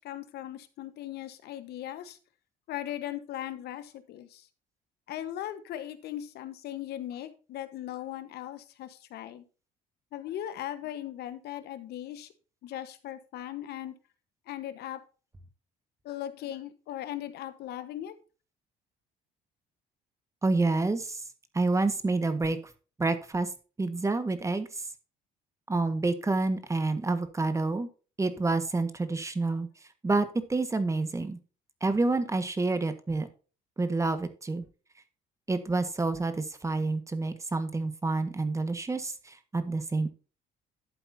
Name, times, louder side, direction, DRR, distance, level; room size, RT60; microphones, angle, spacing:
voice 1, 0.0-2.2 2.7-4.5 5.1-9.4 10.1-12.3 12.6-13.9 14.5-15.0 16.0-18.1, left 12 dB, 70° left, 11 dB, 1.2 m, -38 dB
voice 2, 20.4-21.2 21.5-22.6 23.0-23.5 23.8-24.9 25.7-27.9 28.2-29.7 30.0-31.4 31.8-33.3 33.8-34.7 35.5-40.1, right 3 dB, 15° right, 10 dB, 1.4 m, -28 dB
12.0 x 8.0 x 2.7 m, 0.35 s
cardioid pair, 110°, 17 cm